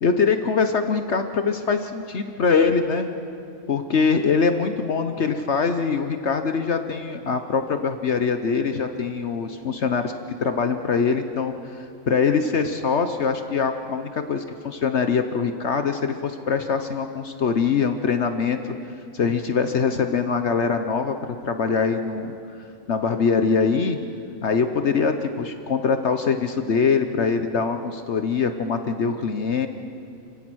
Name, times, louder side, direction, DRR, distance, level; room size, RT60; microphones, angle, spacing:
voice 1, 0.0-3.1 3.7-10.1 10.4-18.6 19.1-22.4 22.9-24.0 24.4-29.7, left 5 dB, 60° left, 8 dB, 1.2 m, -23 dB
29.5 x 16.5 x 6.3 m, 2.5 s
omnidirectional pair, 1.4 m